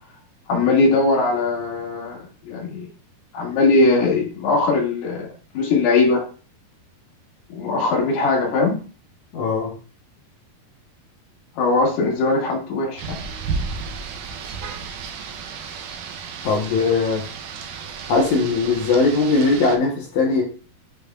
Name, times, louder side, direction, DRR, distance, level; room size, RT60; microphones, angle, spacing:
voice 1, 0.5-2.2 2.5-2.9 3.3-5.3 5.5-6.2 7.5-8.8 11.6-13.2, left 3 dB, 85° left, -2 dB, 4.0 m, -20 dB
voice 2, 9.3-9.7 16.4-17.2 18.1-20.4, left 3 dB, 65° left, -1 dB, 1.9 m, -19 dB
Rain, 13.0-19.8, right 5 dB, 85° right, 1.8 m, -33 dB
8.4 x 5.3 x 2.4 m, 0.38 s
omnidirectional pair, 4.5 m